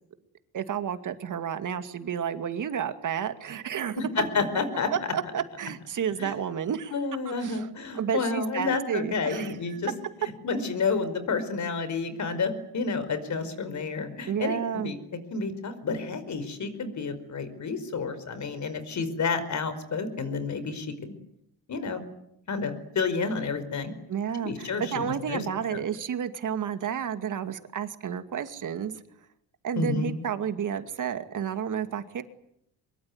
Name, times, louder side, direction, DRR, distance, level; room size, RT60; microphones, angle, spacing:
voice 1, 0.5-4.0 4.9-6.9 7.3-7.7 7.9-9.5 14.3-14.9 24.1-28.9 29.6-32.2, right 8 dB, 55° right, 9 dB, 2.4 m, -31 dB
voice 2, 4.0-4.9 6.2-6.3 6.9-9.9 10.4-15.0 15.3-21.2 21.7-22.0 22.5-23.9 24.4-25.4 25.7-25.8 29.7-30.1, left 4 dB, 50° left, 12 dB, 5.0 m, -30 dB
23.5 x 22.5 x 9.7 m, 0.75 s
cardioid pair, 110°, 38 cm